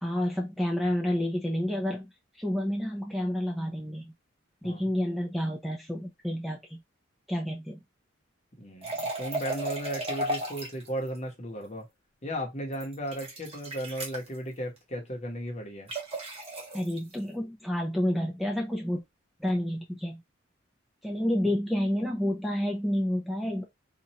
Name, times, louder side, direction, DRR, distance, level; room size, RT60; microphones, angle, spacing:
voice 1, 0.0-2.1 2.4-4.1 4.6-6.8 7.3-7.8 16.7-19.0 19.4-20.2 21.0-23.6, left 1 dB, ahead, 0.5 m, -29 dB
voice 2, 8.6-11.8 12.2-15.9 21.4-21.5, right 1 dB, 35° left, 1.0 m, -35 dB
sound 1, 8.8-10.9 12.7-14.3 15.9-17.0, right 1 dB, 30° right, 1.3 m, -34 dB
4.2 x 2.5 x 2.8 m
head